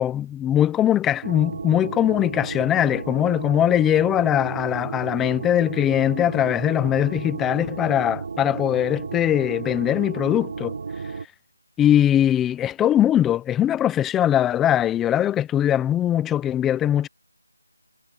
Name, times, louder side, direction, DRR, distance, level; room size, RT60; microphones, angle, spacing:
voice 1, 0.0-10.7 11.8-17.1, left 11 dB, 5° left, 0.7 m, -21 dB
sound 1, 1.2-11.3, right 5 dB, 35° right, 3.2 m, -33 dB
figure-of-eight pair, 175°, 0 cm